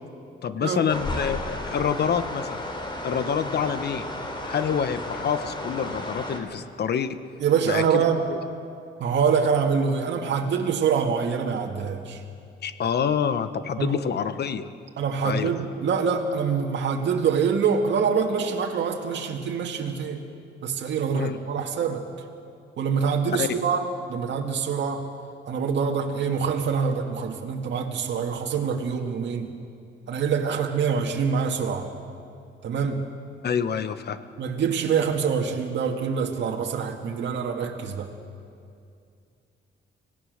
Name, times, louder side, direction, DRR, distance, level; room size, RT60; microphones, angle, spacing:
voice 1, 0.4-2.6 3.0-4.1 4.4-7.2 7.6-8.0 8.3-8.4 12.6-14.7 15.2-15.7 21.1-21.4 23.4-23.6 33.4-34.2, left 7 dB, 55° left, 11 dB, 1.2 m, -27 dB
sound 1, 0.9-6.4, left 1 dB, 25° left, 3.5 m, -33 dB
voice 2, 7.4-8.2 9.0-12.2 13.8-14.0 15.0-20.2 20.6-22.1 22.8-25.1 25.5-29.5 30.1-31.9 32.6-33.0 34.4-38.1, right 6 dB, 65° right, 1 dB, 2.1 m, -25 dB
26.0 x 18.0 x 6.6 m, 2.4 s
cardioid pair, 90°, 20 cm